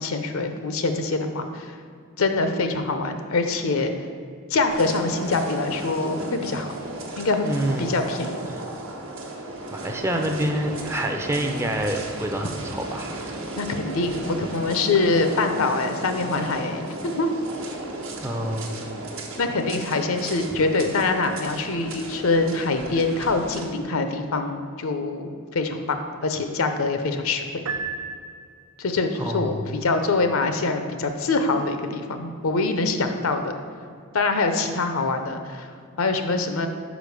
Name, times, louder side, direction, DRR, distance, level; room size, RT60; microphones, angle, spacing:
voice 1, 0.0-1.7 2.2-3.9 4.5-6.8 7.2-7.5 7.8-8.5 13.6-17.3 19.4-27.4 28.8-33.5 34.1-35.7 36.0-36.7, left 3 dB, 75° left, 7 dB, 0.6 m, -24 dB
sound 1, 4.7-23.6, right 2 dB, 70° right, 1.1 m, -35 dB
voice 2, 7.4-8.0 8.5-8.6 9.7-13.3 18.2-18.7 29.2-29.6, right 1 dB, 10° right, 3 dB, 0.5 m, -27 dB
Piano, 27.7-28.9, right 5 dB, 85° right, 0.5 m, -33 dB
5.1 x 5.1 x 6.4 m, 2.2 s
head